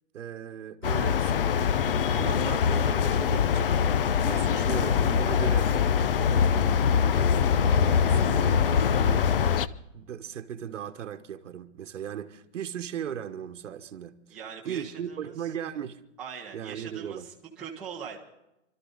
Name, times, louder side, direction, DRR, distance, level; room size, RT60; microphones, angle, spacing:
voice 1, 0.1-1.7 2.0-3.7 4.2-9.6 9.9-14.4 14.6-16.0 16.5-17.3, right 9 dB, 80° right, 1.2 m, -38 dB
sound 1, 0.8-9.7, left 7 dB, 50° left, 0.5 m, -23 dB
voice 2, 14.3-15.3 16.2-18.2, right 7 dB, ahead, 0.8 m, -41 dB
27.5 x 13.0 x 4.0 m
hypercardioid pair, 175°, 37 cm